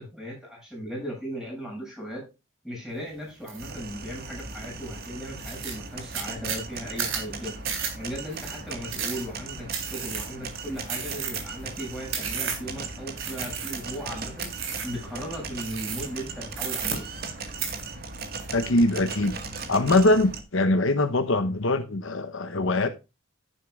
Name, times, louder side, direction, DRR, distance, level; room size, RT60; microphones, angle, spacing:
voice 1, 0.0-2.2 2.6-7.6 7.9-14.5 14.8-17.0, equal, 5° right, 7.3 m, -37 dB
sound 1, 3.5-3.7 4.2-4.7 5.0-5.1 5.4-12.8 13.2-14.0 14.4-15.0 15.6-16.2 16.5-17.3 17.6-18.8 19.1-19.6, right 7 dB, 65° right, 3.5 m, -33 dB
sound 2, 3.6-20.4, right 4 dB, 45° right, 1.7 m, -38 dB
voice 2, 18.5-19.4 19.7-22.9, left 2 dB, 65° left, 0.9 m, -22 dB
11.0 x 10.5 x 2.4 m
head